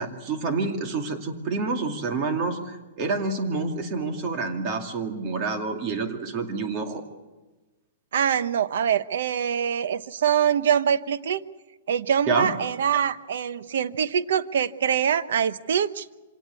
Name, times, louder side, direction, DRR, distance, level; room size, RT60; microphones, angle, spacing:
voice 1, 0.0-7.0 12.3-12.5, right 4 dB, 30° right, 4 dB, 2.4 m, -28 dB
voice 2, 8.1-11.4 11.9-16.1, right 8 dB, 70° right, 14 dB, 1.0 m, -24 dB
25.5 x 18.0 x 8.4 m, 1.2 s
hypercardioid pair, 175°, 0 cm